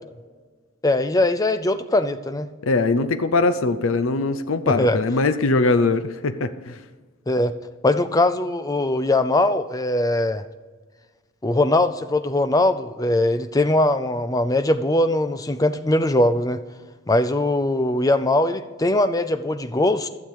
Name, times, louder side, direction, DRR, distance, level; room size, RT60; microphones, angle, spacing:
voice 1, 0.8-2.5 4.7-5.0 7.3-7.5 7.8-10.4 11.4-16.6 17.1-20.1, left 1 dB, 15° left, 11 dB, 0.5 m, -21 dB
voice 2, 2.6-6.8, left 3 dB, 75° left, 11 dB, 0.6 m, -21 dB
12.0 x 7.2 x 4.8 m, 1.4 s
head